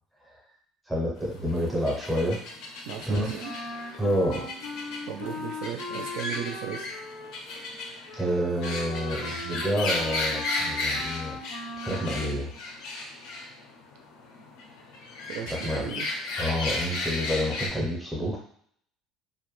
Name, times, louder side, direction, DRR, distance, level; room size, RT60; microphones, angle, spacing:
voice 1, 0.9-2.4 3.1-3.3 4.0-4.5 8.1-11.4 11.8-12.5 15.5-15.9 16.4-18.4, equal, ahead, -3 dB, 0.6 m, -28 dB
sound 1, 1.2-17.7, left 2 dB, 55° left, 0.5 m, -35 dB
voice 2, 2.9-3.5 5.1-6.9 15.3-16.1, right 8 dB, 65° right, 3 dB, 0.4 m, -36 dB
Wind instrument woodwind instrument, 3.4-12.4, left 2 dB, 90° left, 0.8 m, -39 dB
2.5 x 2.1 x 3.0 m, 0.64 s
cardioid pair, 175°, 0 cm